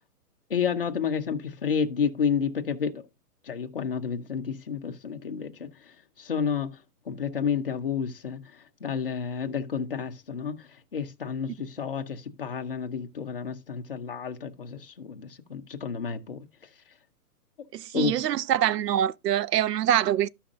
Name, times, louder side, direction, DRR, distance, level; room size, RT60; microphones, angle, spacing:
voice 1, 0.5-3.0 3.5-5.7 6.2-6.7 7.1-8.4 8.8-10.6 10.9-16.4 17.9-18.2, left 6 dB, 35° left, 0.8 m, -30 dB
voice 2, 17.7-20.3, right 11 dB, 85° right, 0.6 m, -24 dB
14.0 x 5.7 x 2.5 m
hypercardioid pair, 180°, 47 cm